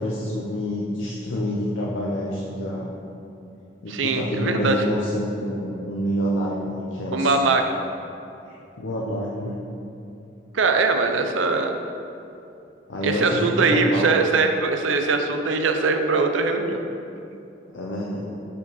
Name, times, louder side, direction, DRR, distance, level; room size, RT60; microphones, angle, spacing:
voice 1, 0.0-2.9 3.8-7.3 8.5-9.6 12.9-14.1 17.7-18.3, equal, 80° left, -5 dB, 0.7 m, -27 dB
voice 2, 3.9-4.9 7.1-7.6 10.5-11.7 13.0-16.8, right 3 dB, 85° right, 5 dB, 0.6 m, -21 dB
6.8 x 5.1 x 4.1 m, 2.8 s
head